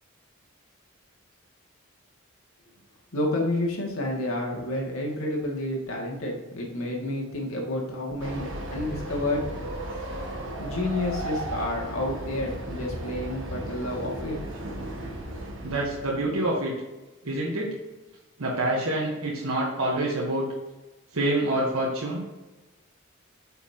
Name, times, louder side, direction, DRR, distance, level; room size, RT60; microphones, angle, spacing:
voice 1, 3.1-9.4 10.6-14.4, left 1 dB, 80° left, -2 dB, 2.2 m, -30 dB
Train, 8.2-16.4, right 1 dB, 65° right, 1.6 m, -35 dB
voice 2, 15.6-16.7 17.2-17.7 18.4-20.5 21.1-22.2, right 1 dB, 80° right, -3 dB, 1.2 m, -26 dB
8.5 x 5.7 x 2.9 m, 1.1 s
head